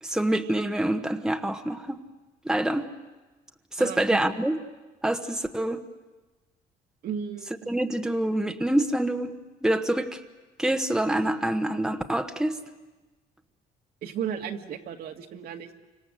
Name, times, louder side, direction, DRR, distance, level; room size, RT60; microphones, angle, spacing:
voice 1, 0.0-2.0 2.4-2.8 3.7-4.6 5.0-5.8 7.7-9.3 9.6-10.2 10.6-12.6, right 1 dB, 5° right, 6 dB, 1.3 m, -26 dB
voice 2, 7.0-7.6 14.0-15.7, right 8 dB, 65° right, 4 dB, 2.0 m, -34 dB
28.5 x 25.5 x 7.8 m, 1.2 s
cardioid pair, 110°, 17 cm